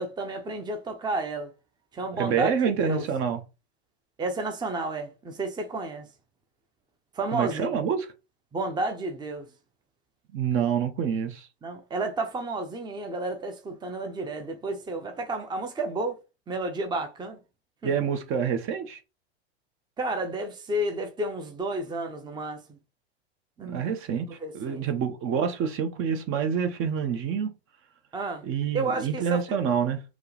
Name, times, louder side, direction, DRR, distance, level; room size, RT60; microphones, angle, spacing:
voice 1, 0.0-1.5 1.9-2.5 2.8-3.1 4.2-6.1 7.1-7.8 8.5-9.5 11.6-16.2 16.5-17.4 17.8-17.9 20.0-22.8 23.6-23.9 24.4-24.8 28.1-28.5 28.7-29.4, right 2 dB, 15° right, 0.8 m, -31 dB
voice 2, 2.1-3.4 7.3-8.1 10.3-11.5 17.8-19.0 23.6-24.2 24.5-27.5 28.4-30.0, right 7 dB, 40° right, 0.9 m, -27 dB
4.5 x 3.0 x 3.4 m
hypercardioid pair, 100°, 32 cm